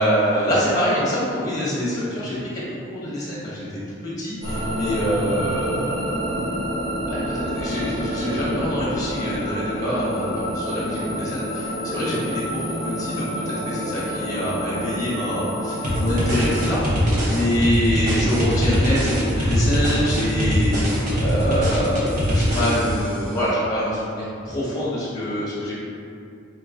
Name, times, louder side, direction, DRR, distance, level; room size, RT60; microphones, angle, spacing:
voice 1, 0.0-6.5 7.0-25.8, equal, 20° left, -8 dB, 1.0 m, -25 dB
sound 1, 4.4-16.7, equal, 75° right, 1.4 m, -28 dB
sound 2, 15.8-23.2, equal, 40° right, 0.9 m, -22 dB
4.5 x 2.3 x 3.6 m, 2.6 s
head